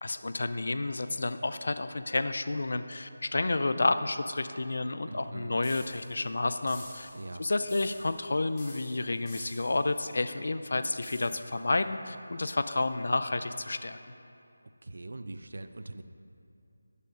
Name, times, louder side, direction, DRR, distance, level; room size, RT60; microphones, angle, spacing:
voice 1, 0.0-7.1 7.4-14.0, left 2 dB, 60° left, 11 dB, 0.4 m, -30 dB
voice 2, 5.1-5.6 7.1-7.4 14.8-16.0, right 2 dB, 65° right, 10 dB, 0.5 m, -42 dB
sound 1, 5.6-6.2 6.7-7.3 7.7-8.3 8.6-9.9 11.0-11.5, left 1 dB, 15° left, 2.2 m, -48 dB
11.5 x 6.7 x 5.3 m, 2.6 s
figure-of-eight pair, 170°, 0 cm